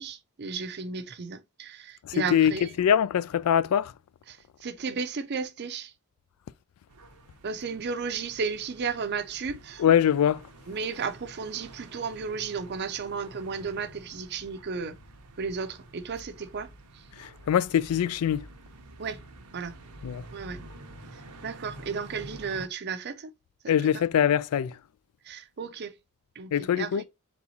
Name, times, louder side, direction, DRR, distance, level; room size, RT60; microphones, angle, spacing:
voice 1, 0.0-2.7 4.3-5.9 7.4-9.8 10.7-15.0 15.4-17.0 19.0-19.2 19.5-19.7 20.3-20.6 21.4-23.3 23.8-23.9 25.2-25.9 26.4-27.0, right 5 dB, 50° right, 0.5 m, -34 dB
voice 2, 2.1-2.5 2.8-3.9 9.8-10.4 17.2-18.5 20.0-20.2 23.7-24.8 26.5-27.0, left 9 dB, 80° left, 0.3 m, -23 dB
sound 1, 6.9-22.7, right 2 dB, 90° right, 0.8 m, -48 dB
4.2 x 3.5 x 2.8 m
head